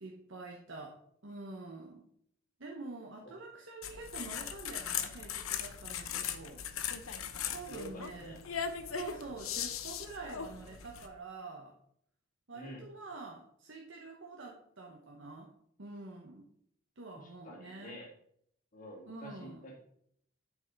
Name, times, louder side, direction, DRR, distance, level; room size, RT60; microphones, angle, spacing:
voice 1, 0.0-1.0 1.2-2.1 2.6-6.6 7.0-8.4 8.8-11.8 12.5-15.5 15.8-16.5 17.0-18.0 19.1-19.7, right 3 dB, 65° right, 0 dB, 1.0 m, -47 dB
sound 1, 3.8-11.1, left 8 dB, 90° left, 0.7 m, -39 dB
voice 2, 7.4-8.4 12.5-12.8 17.1-18.1 18.7-19.8, equal, 40° left, -3 dB, 1.9 m, -48 dB
10.5 x 4.8 x 3.9 m, 0.68 s
head